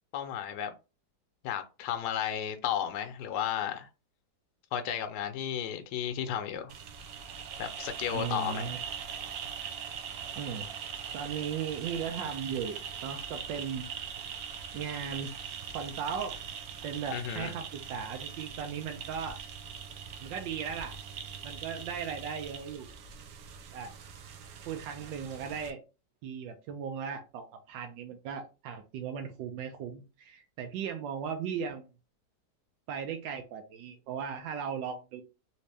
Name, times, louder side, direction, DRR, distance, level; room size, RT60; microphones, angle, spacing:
voice 1, 0.1-0.7 1.4-3.9 4.7-6.7 7.6-8.7 17.1-17.5, left 9 dB, 75° left, 1.0 m, -33 dB
sound 1, 6.7-25.7, right 7 dB, 65° right, 1.0 m, -42 dB
voice 2, 8.1-8.8 10.4-10.6 11.1-13.8 14.7-15.3 15.7-16.3 16.8-19.4 20.2-20.9 21.4-22.9 23.7-23.9 24.7-25.8 26.2-31.8 32.9-35.2, right 7 dB, 85° right, 1.3 m, -37 dB
3.3 x 2.8 x 3.2 m
omnidirectional pair, 2.0 m